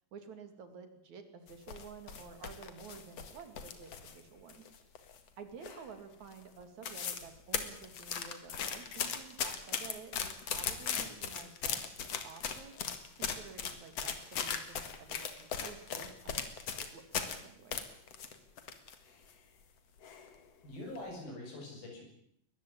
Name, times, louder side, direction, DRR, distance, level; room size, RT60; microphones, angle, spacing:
voice 1, 0.1-4.7 5.4-11.9 12.2-16.5 16.8-17.9, right 6 dB, 60° right, 8 dB, 3.4 m, -51 dB
sound 1, 1.5-4.2 4.5-5.3 5.6-6.0 6.3-6.4 6.6-7.3 7.5-17.4 17.7-19.0 19.3-19.4 20.0-20.4 20.8-21.0, left 7 dB, 50° left, 2.6 m, -38 dB
voice 2, 20.6-22.0, left 1 dB, 90° left, 0 dB, 9.4 m, -44 dB
22.0 x 14.5 x 9.9 m, 0.71 s
omnidirectional pair, 4.0 m